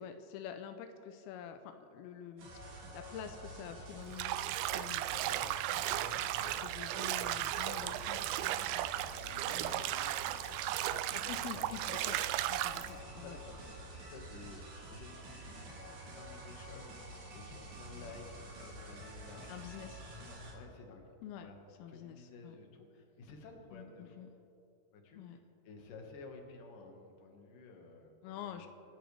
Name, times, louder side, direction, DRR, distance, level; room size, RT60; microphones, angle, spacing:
voice 1, 0.0-2.5 2.9-4.4 4.7-5.1 5.7-5.9 6.1-6.3 6.6-8.9 9.5-9.8 11.1-12.2 12.5-13.4 17.8-18.1 19.5-20.0 21.2-21.5 21.8-22.6 23.7-24.3 25.1-25.4 28.2-28.7, left 8 dB, 85° left, 7 dB, 2.3 m, -47 dB
sound 1, 2.4-20.5, right 1 dB, 65° right, 4.5 m, -49 dB
Bathtub (filling or washing), 4.1-12.9, right 14 dB, 85° right, 2.4 m, -35 dB
voice 2, 5.1-6.7 7.7-11.9 13.0-21.1 21.4-21.6 21.9-24.3 24.9-28.7, left 3 dB, 55° left, 2 dB, 2.9 m, -53 dB
27.0 x 12.0 x 3.4 m, 2.8 s
omnidirectional pair, 5.1 m